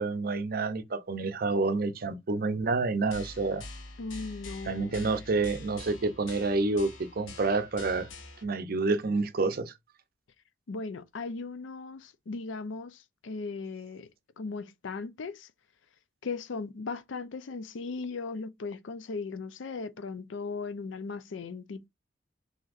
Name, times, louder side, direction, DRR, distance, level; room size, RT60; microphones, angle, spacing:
voice 1, 0.0-3.7 4.7-8.1 8.4-9.7, right 3 dB, 50° right, 0.5 m, -28 dB
sound 1, 3.1-8.4, left 2 dB, 90° left, 1.3 m, -45 dB
voice 2, 4.0-5.1 10.7-14.1 14.4-15.5 16.2-21.9, left 4 dB, 70° left, 0.5 m, -37 dB
5.9 x 2.8 x 2.4 m
head